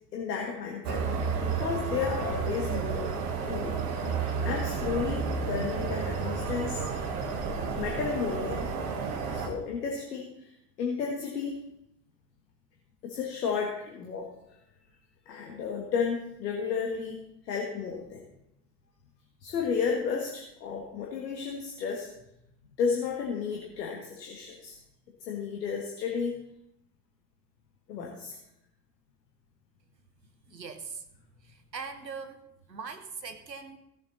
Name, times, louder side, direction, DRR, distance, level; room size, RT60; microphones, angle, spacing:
voice 1, 0.1-1.0 1.4-3.1 3.5-3.8 4.4-6.8 7.7-8.7 9.3-10.5 10.8-11.6 13.0-14.3 15.2-17.2 17.4-18.2 19.4-22.3 22.8-24.8 25.2-26.4 27.9-28.4, left 6 dB, 75° left, 0 dB, 1.7 m, -32 dB
sound 1, 0.8-9.5, right 5 dB, 65° right, 1.6 m, -31 dB
voice 2, 30.5-31.0 31.4-32.4 32.7-33.8, right 5 dB, 90° right, 8 dB, 1.1 m, -41 dB
16.5 x 7.7 x 4.0 m, 0.80 s
figure-of-eight pair, 60°, 49 cm